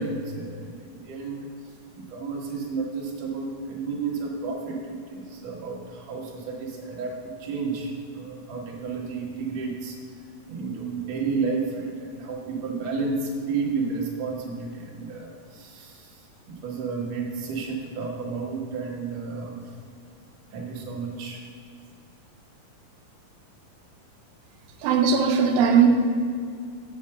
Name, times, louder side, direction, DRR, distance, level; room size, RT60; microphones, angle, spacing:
voice 1, 0.0-10.0 10.5-19.8 20.5-21.4, right 4 dB, 60° right, -2 dB, 2.2 m, -32 dB
voice 2, 24.8-25.9, right 6 dB, 90° right, 3 dB, 2.5 m, -19 dB
7.7 x 5.1 x 7.5 m, 2.3 s
omnidirectional pair, 4.1 m